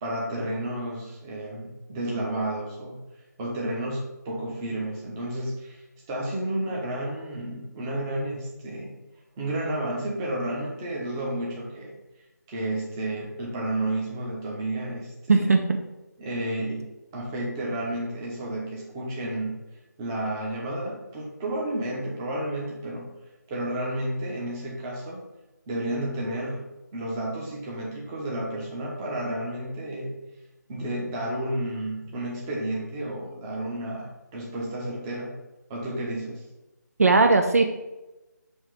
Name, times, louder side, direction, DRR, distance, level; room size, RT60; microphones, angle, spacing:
voice 1, 0.0-3.0 3.4-9.0 9.4-11.9 12.5-15.5 16.2-16.9 17.1-19.5 20.0-23.1 23.5-25.2 25.7-26.6 26.9-30.1 30.7-35.4 35.7-36.4, right 1 dB, 10° right, -3 dB, 1.0 m, -31 dB
voice 2, 15.3-15.8 37.0-37.7, right 3 dB, 50° right, 5 dB, 0.6 m, -18 dB
7.3 x 3.1 x 4.9 m, 1.1 s
figure-of-eight pair, 165°, 10 cm